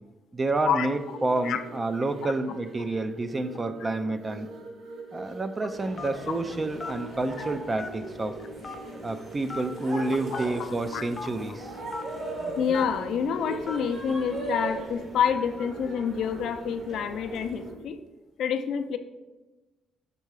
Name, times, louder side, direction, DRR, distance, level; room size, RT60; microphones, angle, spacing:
voice 1, 0.3-4.5 5.1-8.4 9.0-11.7, right 2 dB, 25° right, 10 dB, 0.5 m, -29 dB
sound 1, 0.9-17.9, right 2 dB, 75° right, 0.9 m, -44 dB
sound 2, 5.7-17.7, right 1 dB, 55° right, 2.0 m, -39 dB
Telephone, 6.0-6.3 6.8-7.0 7.8-8.2 8.6-8.8 9.5-9.7 10.3-10.5 11.1-11.3 11.9-12.0 12.7-13.0 13.7-13.9, left 4 dB, 30° left, 0.7 m, -37 dB
voice 2, 10.3-11.0 12.6-18.0 18.4-19.0, left 7 dB, 75° left, 8 dB, 0.5 m, -28 dB
6.8 x 3.6 x 4.8 m, 1.1 s
cardioid pair, 90°, 0 cm